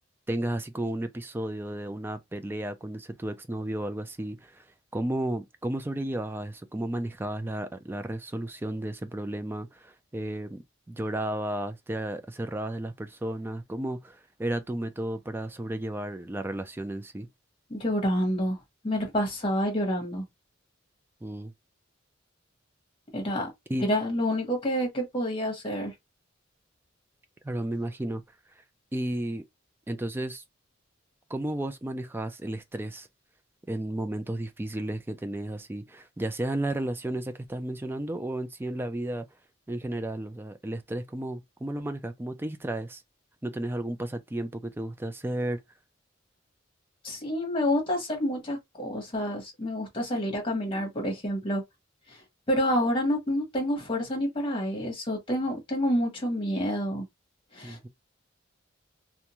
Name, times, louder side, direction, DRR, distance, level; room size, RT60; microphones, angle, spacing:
voice 1, 0.3-4.6 4.9-17.3 21.2-21.5 23.7-23.8 27.4-28.2 28.9-29.4 29.9-30.4 31.3-33.1 33.7-39.3 39.7-43.0 43.4-45.6 57.6-57.9, right 1 dB, 10° right, 0.3 m, -33 dB
voice 2, 17.7-18.6 18.8-20.2 23.1-23.5 23.8-25.9 47.0-51.6 52.5-57.0 57.5-57.9, equal, 25° left, 1.1 m, -28 dB
2.5 x 2.3 x 2.9 m
head